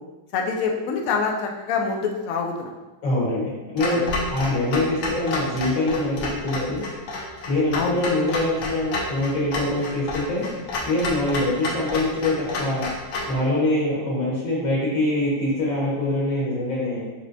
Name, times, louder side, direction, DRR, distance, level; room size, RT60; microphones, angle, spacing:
voice 1, 0.3-2.7 3.9-4.0 7.7-8.0, left 5 dB, 85° left, 2 dB, 0.7 m, -25 dB
voice 2, 3.0-6.8 7.5-10.5 10.9-12.9 13.3-17.1, left 1 dB, 50° left, -5 dB, 1.6 m, -24 dB
Clock, 3.8-13.3, left 2 dB, 65° left, 1.2 m, -30 dB
5.4 x 3.0 x 2.6 m, 1.1 s
omnidirectional pair, 2.0 m